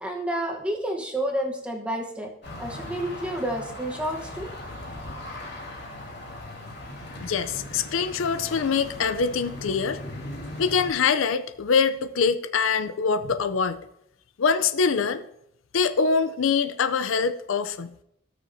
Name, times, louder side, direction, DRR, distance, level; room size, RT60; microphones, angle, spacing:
voice 1, 0.0-2.3 2.6-4.5, right 1 dB, 5° right, 2 dB, 1.0 m, -30 dB
sound 1, 2.4-10.9, left 1 dB, 55° left, 2.8 m, -38 dB
voice 2, 7.2-10.0 10.6-13.8 14.4-15.2 15.7-17.9, left 5 dB, 80° left, 12 dB, 0.5 m, -24 dB
16.5 x 6.4 x 2.7 m, 0.76 s
head